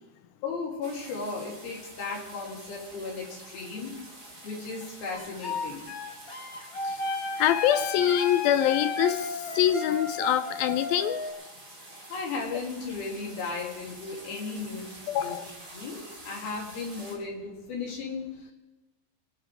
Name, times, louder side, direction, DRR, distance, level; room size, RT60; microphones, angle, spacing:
voice 1, 0.4-3.9 4.4-5.9 12.1-14.9 15.1-15.4 15.7-16.0 16.2-18.5, left 4 dB, 65° left, -1 dB, 5.5 m, -35 dB
sound 1, 0.8-17.2, right 1 dB, 20° right, 2.8 m, -48 dB
sound 2, 5.1-11.3, left 3 dB, 40° left, 1.2 m, -33 dB
voice 2, 7.4-11.3 15.1-15.5, left 11 dB, 80° left, 12 dB, 2.2 m, -25 dB
24.0 x 10.5 x 4.8 m, 1.1 s
omnidirectional pair, 4.7 m